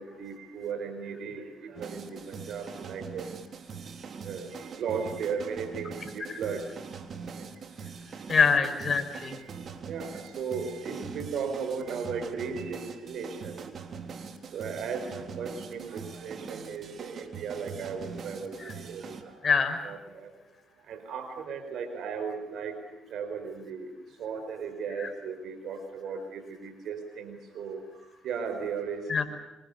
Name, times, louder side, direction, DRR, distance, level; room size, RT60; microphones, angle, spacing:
voice 1, 0.0-3.3 4.2-6.6 7.3-7.5 9.3-9.5 9.9-13.7 14.5-19.4 19.8-20.3 20.9-22.8 23.1-23.9 24.2-27.8 28.2-29.2, right 6 dB, 75° right, 7 dB, 5.0 m, -36 dB
sound 1, 1.8-19.2, right 6 dB, 55° right, 3.5 m, -42 dB
voice 2, 8.3-9.4 18.6-18.7 19.4-19.8 25.0-25.1 29.1-29.2, left 5 dB, 45° left, 8 dB, 5.7 m, -24 dB
27.5 x 25.5 x 7.0 m, 0.98 s
cardioid pair, 90°, 0 cm